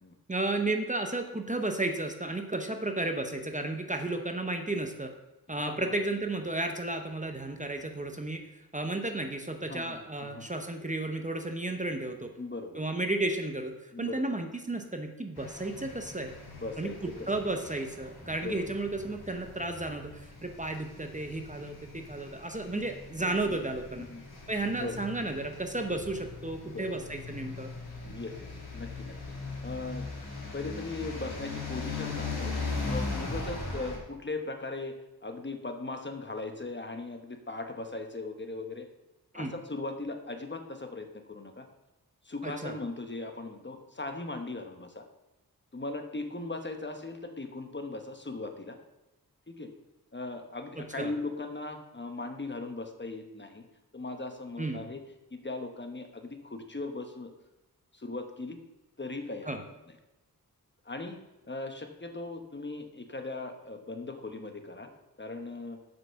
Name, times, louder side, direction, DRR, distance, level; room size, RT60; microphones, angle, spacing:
voice 1, 0.3-5.1 5.5-12.3 12.7-16.3 16.8-24.1 24.5-27.7 39.3-39.5 42.4-42.7 51.0-51.1 54.6-54.8 59.4-59.6, right 2 dB, 20° right, 5 dB, 0.8 m, -33 dB
voice 2, 5.5-5.8 9.7-10.5 12.4-12.9 13.9-14.2 16.6-17.3 18.2-18.7 23.2-23.6 24.0-24.2 24.8-25.0 26.7-26.9 28.0-29.2 29.6-30.1 30.5-32.5 32.9-38.9 39.3-41.7 42.2-45.0 45.7-48.8 49.5-49.7 50.1-53.7 53.9-55.0 55.3-57.3 57.9-58.6 59.0-59.6 60.8-61.2 61.5-64.9 65.2-65.8, left 3 dB, 30° left, 5 dB, 1.1 m, -39 dB
sound 1, 15.4-34.0, left 3 dB, 85° left, 2.5 m, -40 dB
7.8 x 6.0 x 6.8 m, 1.0 s
wide cardioid pair, 105°, 37 cm